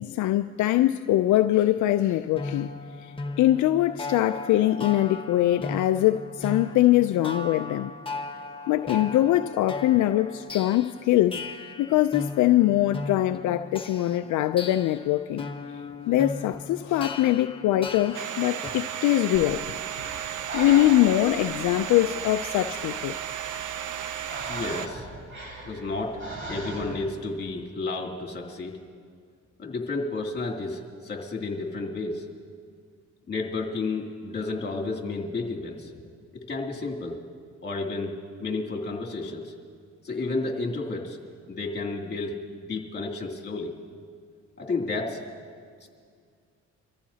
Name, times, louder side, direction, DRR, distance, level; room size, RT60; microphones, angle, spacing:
voice 1, 0.0-2.7 3.0-7.9 8.7-11.4 11.8-15.5 16.1-19.7 20.5-23.1, left 14 dB, 75° left, 0.5 m, -23 dB
sound 1, 2.4-18.7, left 3 dB, 15° left, 1.4 m, -37 dB
Domestic sounds home sounds, 18.1-24.9, right 10 dB, 80° right, 0.8 m, -34 dB
Breathing, 19.3-27.2, right 2 dB, 40° right, 3.8 m, -40 dB
voice 2, 24.5-25.1 25.6-26.2 26.5-28.8 29.6-32.3 33.3-35.9 36.3-37.2 37.6-39.5 40.0-41.2 41.5-43.7 44.6-45.2 45.8-45.9, left 3 dB, 35° left, 2.6 m, -31 dB
25.0 x 14.0 x 2.8 m
cardioid pair, 90°, 30 cm